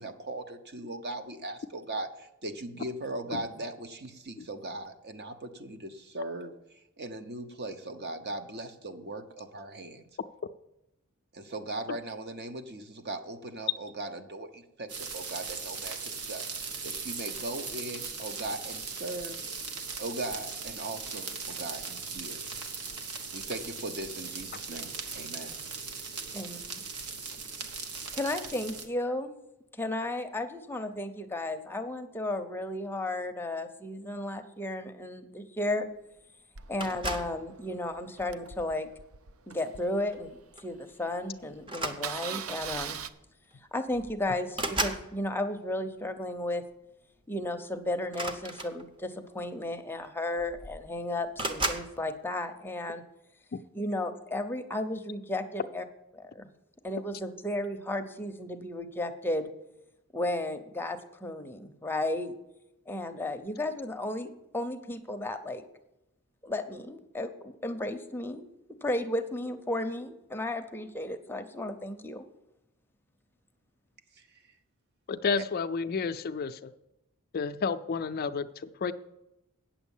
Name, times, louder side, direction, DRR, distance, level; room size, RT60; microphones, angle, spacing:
voice 1, 0.0-6.5 7.0-10.1 11.3-16.5 16.8-19.4 20.0-22.4 23.3-25.6 27.2-27.4, right 2 dB, 50° right, 8 dB, 0.9 m, -39 dB
sound 1, 14.9-28.9, right 5 dB, 85° right, 1.2 m, -39 dB
voice 2, 28.1-29.3 29.7-35.9 36.7-38.9 39.5-43.0 43.7-46.6 47.3-53.0 53.7-55.8 56.1-56.5 56.8-59.5 60.1-62.3 62.9-65.6 66.4-68.5 68.8-72.2, left 1 dB, 10° left, 7 dB, 0.7 m, -34 dB
Engine starting, 36.5-40.7 41.2-41.3 41.5-41.6 41.9-43.1, right 7 dB, 70° right, 0.6 m, -41 dB
sound 2, 36.8-37.4 38.3-38.6 40.1-40.3 40.6-40.8 41.6-42.5 43.5-43.6 43.9-45.1 48.0-49.1 50.0-50.1 50.4-50.9 51.4-51.9, right 2 dB, 25° right, 0.8 m, -34 dB
voice 3, 75.1-76.7 77.3-78.9, left 5 dB, 45° left, 11 dB, 0.4 m, -31 dB
9.1 x 7.2 x 7.1 m, 0.89 s
head